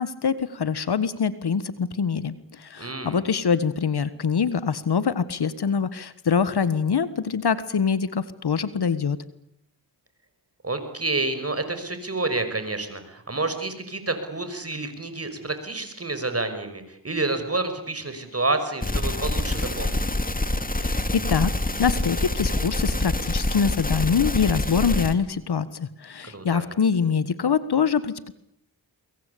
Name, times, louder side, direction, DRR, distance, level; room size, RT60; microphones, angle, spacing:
voice 1, 0.0-9.2 20.8-21.5 21.8-28.3, left 6 dB, 65° left, 15 dB, 1.6 m, -24 dB
voice 2, 2.8-3.2 10.6-20.0 26.3-26.6, right 2 dB, 35° right, 9 dB, 5.8 m, -29 dB
sound 1, 18.8-25.1, left 1 dB, 20° left, 2.7 m, -26 dB
24.0 x 22.0 x 8.5 m, 0.74 s
cardioid pair, 50°, 43 cm